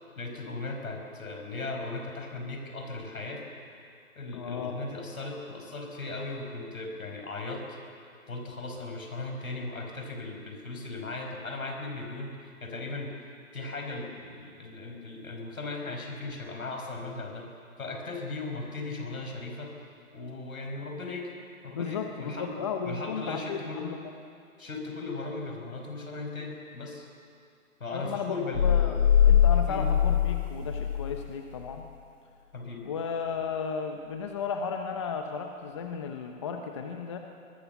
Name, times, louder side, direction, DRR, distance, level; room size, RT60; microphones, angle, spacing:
voice 1, 0.2-3.4 4.2-7.7 8.3-13.1 13.5-17.5 17.8-21.3 21.6-22.6 22.9-23.9 24.6-27.1 27.8-29.0 29.7-29.9 32.5-32.9, left 3 dB, 85° left, 3 dB, 5.6 m, -37 dB
voice 2, 4.3-4.8 21.7-24.1 27.9-31.9 32.8-37.2, left 6 dB, 20° left, 4 dB, 0.9 m, -34 dB
sound 1, 28.5-31.3, left 9 dB, 60° left, 1.5 m, -22 dB
24.0 x 22.0 x 7.1 m, 2.4 s
hypercardioid pair, 165°, 41 cm